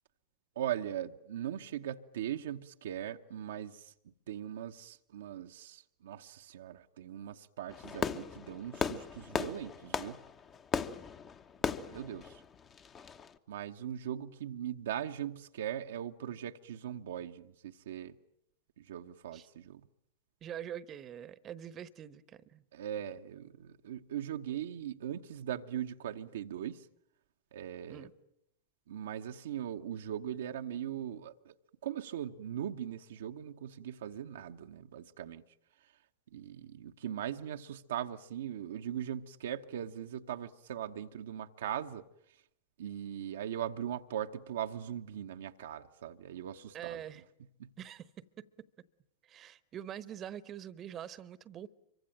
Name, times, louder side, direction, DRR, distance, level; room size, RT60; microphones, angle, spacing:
voice 1, 0.6-3.9 4.3-10.2 11.9-12.4 13.5-18.2 18.8-19.9 22.7-26.9 27.5-28.1 28.9-31.5 31.8-35.4 36.3-42.1 42.8-47.0 47.6-47.7, right 10 dB, 60° right, 1.0 m, -40 dB
Fireworks, 7.7-13.3, left 6 dB, 25° left, 1.2 m, -37 dB
voice 2, 20.4-22.6 27.9-28.1 46.7-47.2 47.8-48.5 49.2-51.7, right 10 dB, 30° right, 1.1 m, -44 dB
26.0 x 24.0 x 9.0 m
figure-of-eight pair, 90°, 0 cm